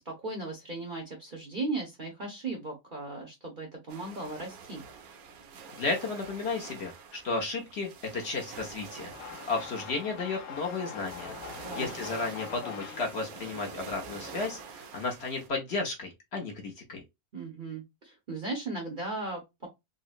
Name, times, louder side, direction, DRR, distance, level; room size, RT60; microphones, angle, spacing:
voice 1, 0.0-4.8 11.6-11.9 17.3-19.7, right 3 dB, 50° right, 0.7 m, -37 dB
sound 1, 3.9-15.5, right 5 dB, 80° right, 1.1 m, -47 dB
voice 2, 5.8-9.2 9.5-11.3 11.7-17.0, left 3 dB, 55° left, 0.9 m, -33 dB
sound 2, 9.1-14.6, left 7 dB, 80° left, 1.1 m, -43 dB
3.7 x 2.0 x 2.4 m
omnidirectional pair, 1.6 m